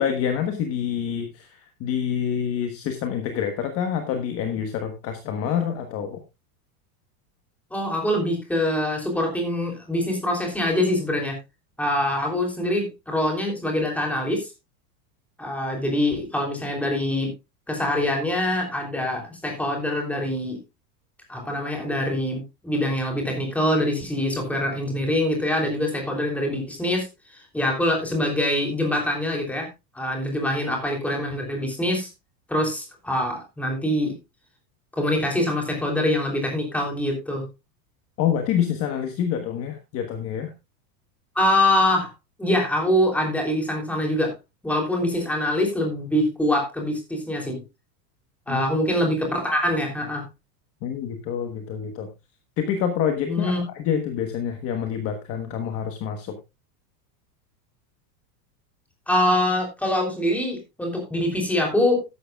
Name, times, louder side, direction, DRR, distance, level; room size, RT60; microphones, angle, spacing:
voice 1, 0.0-6.2 38.2-40.5 48.5-48.6 50.8-52.1 52.6-56.4, left 8 dB, 30° left, 6 dB, 1.3 m, -27 dB
voice 2, 7.7-11.4 11.8-14.5 15.4-17.3 17.7-20.6 21.3-27.1 27.5-29.7 29.9-32.1 32.5-34.2 34.9-37.4 41.3-42.1 42.4-44.3 44.6-47.6 48.5-50.2 53.3-53.6 59.1-62.0, left 1 dB, 5° left, 1 dB, 3.2 m, -24 dB
13.5 x 11.0 x 2.4 m, 0.24 s
supercardioid pair, 170°, 47 cm